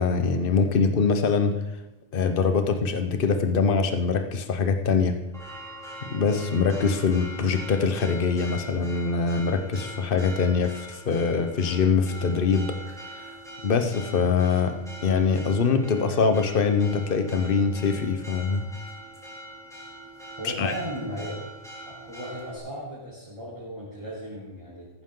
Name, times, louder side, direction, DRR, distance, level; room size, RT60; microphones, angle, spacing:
voice 1, 0.0-1.5 2.1-5.2 6.1-12.7 13.1-13.2 13.6-14.7 15.0-18.6 20.4-20.7, left 5 dB, 50° left, 7 dB, 1.2 m, -23 dB
Church bell, 5.3-22.6, right 1 dB, ahead, 2.9 m, -42 dB
voice 2, 20.4-21.4 21.9-24.9, equal, 25° right, -9 dB, 4.0 m, -36 dB
14.5 x 12.5 x 3.9 m, 0.97 s
omnidirectional pair, 1.2 m